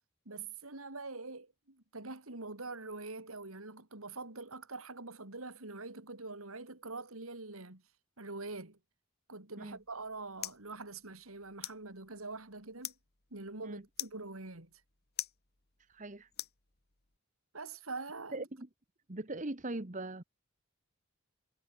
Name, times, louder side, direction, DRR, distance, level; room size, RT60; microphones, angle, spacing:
voice 1, 0.2-7.8 8.2-8.8 9.3-12.9 13.3-14.7 17.5-18.5, right 3 dB, 85° right, 3.5 m, -44 dB
sound 1, 9.6-17.2, left 13 dB, 50° left, 2.8 m, -47 dB
voice 2, 15.8-16.3 18.3-18.7 19.1-20.2, right 2 dB, 35° right, 1.4 m, -40 dB
head